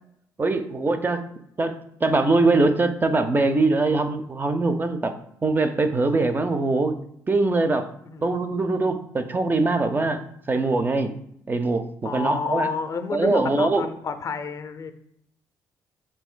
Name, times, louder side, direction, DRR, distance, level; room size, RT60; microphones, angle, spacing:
voice 1, 0.4-1.2 1.6-1.7 2.0-5.1 5.4-6.9 7.3-7.9 8.2-10.2 10.5-11.1 11.5-12.7 13.1-13.9, right 3 dB, 25° right, 8 dB, 0.5 m, -22 dB
voice 2, 8.1-8.6 12.0-14.9, left 5 dB, 45° left, 8 dB, 0.5 m, -30 dB
5.5 x 2.5 x 2.2 m, 0.72 s
supercardioid pair, 65°, 8 cm